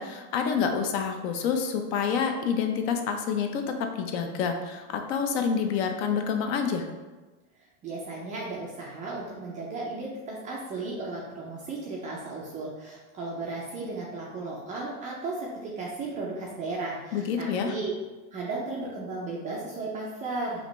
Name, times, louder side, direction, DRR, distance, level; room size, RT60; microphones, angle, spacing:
voice 1, 0.0-6.9 17.1-17.7, left 6 dB, 50° left, 5 dB, 0.6 m, -28 dB
voice 2, 7.8-17.9 18.3-20.7, right 3 dB, 20° right, -3 dB, 0.3 m, -35 dB
5.0 x 2.5 x 3.0 m, 1.2 s
supercardioid pair, 130°, 41 cm